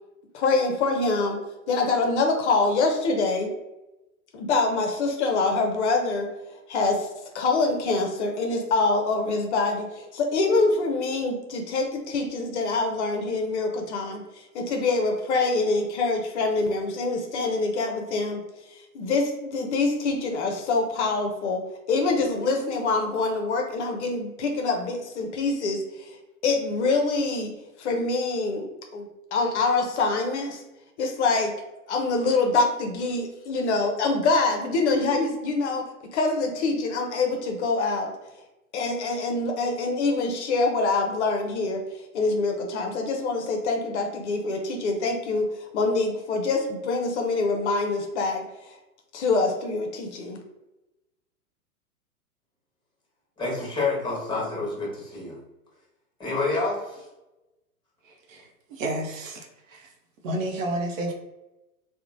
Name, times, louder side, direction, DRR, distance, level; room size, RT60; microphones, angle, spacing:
voice 1, 0.3-1.4 1.7-3.5 4.3-6.3 6.7-7.1 7.3-18.4 18.7-26.2 26.4-27.5 27.8-28.7 28.9-30.6 31.0-31.5 31.9-38.1 38.7-48.8 49.1-50.4, left 3 dB, 50° left, 3 dB, 0.6 m, -25 dB
voice 2, 53.4-55.4 56.2-57.0, left 3 dB, 10° left, -4 dB, 1.0 m, -28 dB
voice 3, 58.0-59.9 60.2-61.1, right 1 dB, 60° right, 1 dB, 0.7 m, -31 dB
2.9 x 2.1 x 2.5 m, 0.99 s
hypercardioid pair, 110°, 45 cm